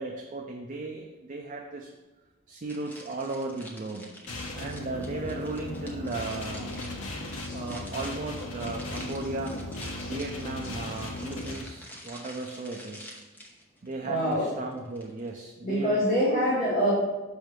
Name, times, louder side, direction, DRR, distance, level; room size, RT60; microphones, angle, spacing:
voice 1, 0.0-1.9 2.5-4.1 4.6-6.9 7.5-9.6 10.0-13.1 13.8-16.0, right 2 dB, 35° right, 2 dB, 0.4 m, -36 dB
sound 1, 2.7-15.3, equal, 10° left, 0.8 m, -48 dB
sound 2, 4.3-11.6, left 1 dB, 65° left, 1.0 m, -37 dB
voice 2, 14.0-14.5 15.6-16.9, equal, 35° left, -9 dB, 2.1 m, -25 dB
6.3 x 3.4 x 6.0 m, 1.2 s
head